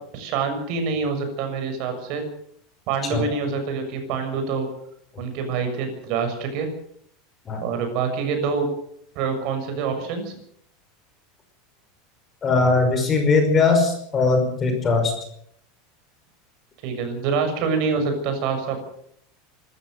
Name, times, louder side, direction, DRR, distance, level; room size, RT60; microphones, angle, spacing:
voice 1, 0.1-2.2 2.9-4.7 5.2-6.7 7.6-8.7 9.1-10.4 16.8-18.8, right 5 dB, 45° right, 6 dB, 6.6 m, -26 dB
voice 2, 12.4-15.1, left 3 dB, 20° left, 5 dB, 5.4 m, -20 dB
25.0 x 14.0 x 8.0 m, 0.68 s
supercardioid pair, 165°, 0 cm